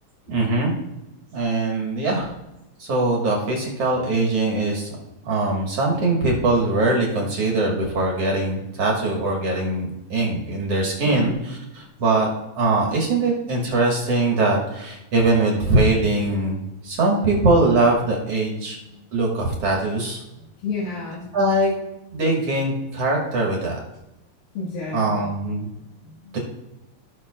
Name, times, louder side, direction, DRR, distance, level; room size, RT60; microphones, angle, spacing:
voice 1, 0.3-0.7 1.3-2.3 2.8-5.0 5.2-12.3 12.6-18.8 19.1-20.2 21.3-21.7 22.1-23.8 24.9-25.7 26.3-26.4, right 2 dB, 55° right, -1 dB, 2.0 m, -22 dB
voice 2, 20.4-21.3 24.5-25.3 25.7-26.4, left 3 dB, 80° left, -6 dB, 3.4 m, -32 dB
16.0 x 6.2 x 2.4 m, 0.95 s
omnidirectional pair, 4.4 m